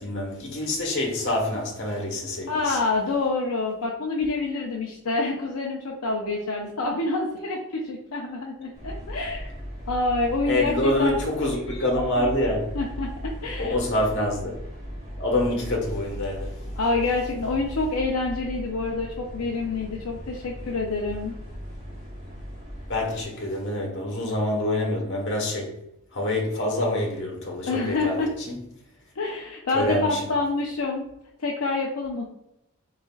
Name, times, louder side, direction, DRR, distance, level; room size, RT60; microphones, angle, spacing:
voice 1, 0.0-2.8 10.5-12.7 13.6-14.5 15.2-16.5 22.9-25.8 26.1-28.5 29.7-30.2, left 1 dB, 55° left, -1 dB, 1.3 m, -26 dB
voice 2, 2.5-9.5 9.9-11.2 12.7-13.8 16.8-21.3 27.7-28.3 29.2-31.1 31.4-32.2, left 3 dB, 75° left, -1 dB, 0.6 m, -27 dB
sound 1, 8.7-23.2, equal, 35° right, 1.4 m, -37 dB
4.1 x 3.9 x 2.4 m, 0.85 s
head